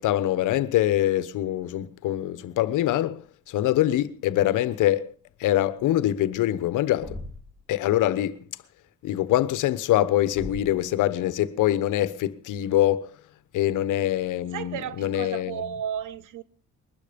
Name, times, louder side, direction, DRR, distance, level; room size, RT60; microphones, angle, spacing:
voice 1, 0.0-5.1 5.4-7.2 7.7-8.4 9.0-13.1 13.5-15.6, left 13 dB, 85° left, 1.1 m, -24 dB
Thump thud, 7.0-7.6 10.3-10.9, left 1 dB, 5° right, 5.7 m, -38 dB
voice 2, 14.5-16.4, right 9 dB, 80° right, 1.1 m, -33 dB
21.5 x 12.0 x 5.2 m
cardioid pair, 90°, 30 cm